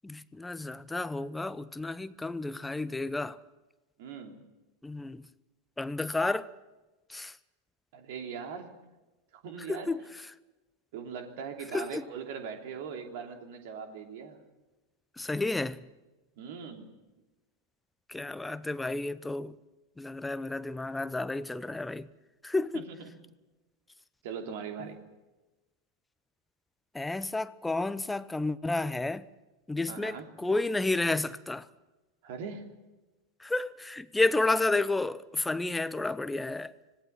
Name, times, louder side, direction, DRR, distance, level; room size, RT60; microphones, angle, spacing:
voice 1, 0.0-3.4 4.8-5.2 5.8-6.5 7.1-7.3 9.7-10.0 11.7-12.1 15.2-15.8 18.1-19.5 20.0-22.1 22.4-22.9 26.9-29.3 29.7-31.7 33.4-36.7, left 2 dB, 10° left, 0.8 m, -31 dB
voice 2, 4.0-4.4 7.9-8.7 9.3-9.9 10.9-14.4 16.4-16.9 22.7-23.1 24.2-25.1 29.9-30.3 32.2-32.7, right 6 dB, 55° right, 3.0 m, -40 dB
26.0 x 18.5 x 5.8 m
figure-of-eight pair, 90°, 0 cm